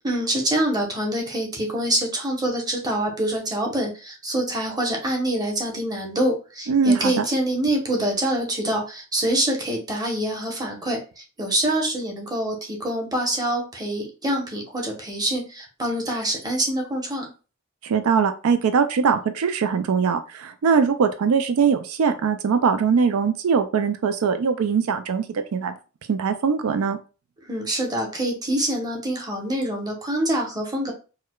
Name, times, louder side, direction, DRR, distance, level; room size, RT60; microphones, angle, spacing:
voice 1, 0.0-17.3 27.5-30.9, right 1 dB, 20° right, 0 dB, 0.9 m, -25 dB
voice 2, 6.7-7.2 17.8-25.7 26.1-27.0, right 6 dB, 85° right, 9 dB, 0.4 m, -21 dB
4.7 x 2.1 x 2.3 m, 0.33 s
head